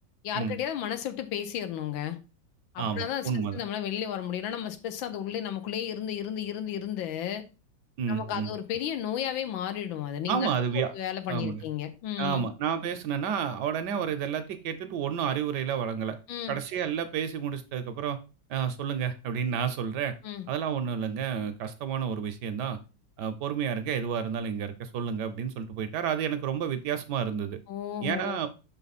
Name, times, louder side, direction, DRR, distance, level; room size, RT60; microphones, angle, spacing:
voice 1, 0.2-2.2 2.7-7.4 8.1-10.5 10.7-12.4 16.3-16.6 20.2-20.5 27.7-28.4, left 10 dB, 85° left, 9 dB, 1.5 m, -33 dB
voice 2, 2.8-3.6 8.0-8.5 10.3-10.9 11.3-11.6 12.2-16.2 16.5-18.2 18.5-20.1 20.5-22.8 23.2-27.6 28.0-28.5, right 7 dB, 70° right, 9 dB, 1.1 m, -30 dB
5.8 x 4.2 x 4.0 m, 0.31 s
omnidirectional pair, 2.1 m